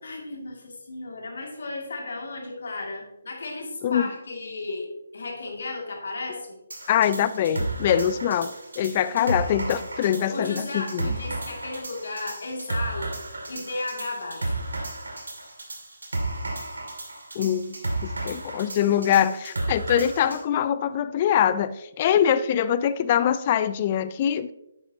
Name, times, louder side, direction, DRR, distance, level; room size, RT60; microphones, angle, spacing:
voice 1, 0.0-6.6 10.3-13.1 13.5-14.6, left 2 dB, 65° left, 1 dB, 2.3 m, -34 dB
sound 1, 6.7-20.4, right 2 dB, 80° right, 2.2 m, -33 dB
voice 2, 6.9-11.1 17.4-17.8 18.0-24.5, left 9 dB, 35° left, 16 dB, 0.4 m, -23 dB
10.0 x 8.1 x 2.8 m, 0.88 s
figure-of-eight pair, 150°, 0 cm